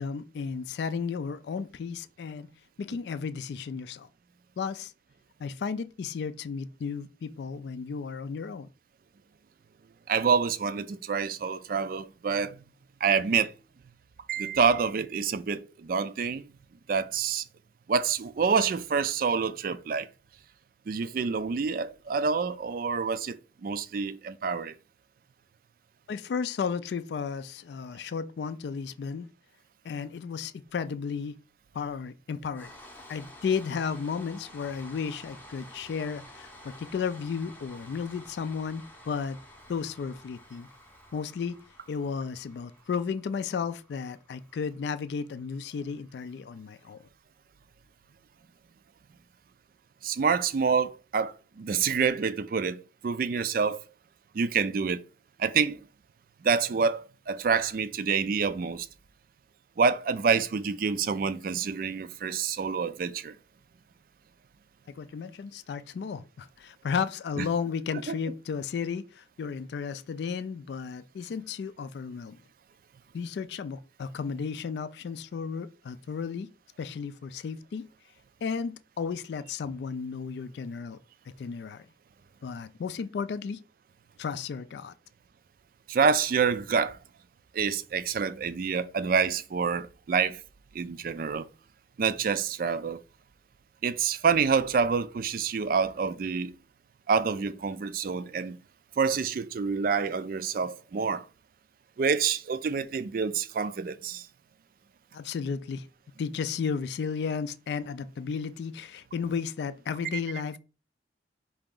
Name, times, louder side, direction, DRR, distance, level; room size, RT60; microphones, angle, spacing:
voice 1, 0.0-2.5 2.8-4.1 4.6-4.9 5.4-8.7 26.1-29.3 29.8-31.4 31.7-32.7 33.1-39.4 39.7-40.7 41.1-41.6 41.9-47.1 64.9-72.4 73.1-76.5 76.8-77.9 78.4-81.0 81.4-81.9 82.4-83.6 84.2-84.9 105.1-105.9 106.2-110.6, left 6 dB, 65° left, 0.3 m, -33 dB
voice 2, 10.1-12.6 13.0-13.5 14.3-16.5 16.9-17.4 17.9-20.1 20.9-24.8 50.0-53.8 54.3-55.0 55.4-55.8 56.4-58.9 59.8-63.4 67.4-67.5 68.1-68.2 85.9-87.0 87.5-90.4 90.7-91.5 92.0-93.0 93.8-96.5 97.1-98.6 99.0-101.3 102.0-104.3 110.1-110.2, right 5 dB, 50° right, 0.3 m, -27 dB
sound 1, 32.5-46.6, left 1 dB, 10° left, 0.6 m, -51 dB
5.0 x 2.8 x 3.7 m
head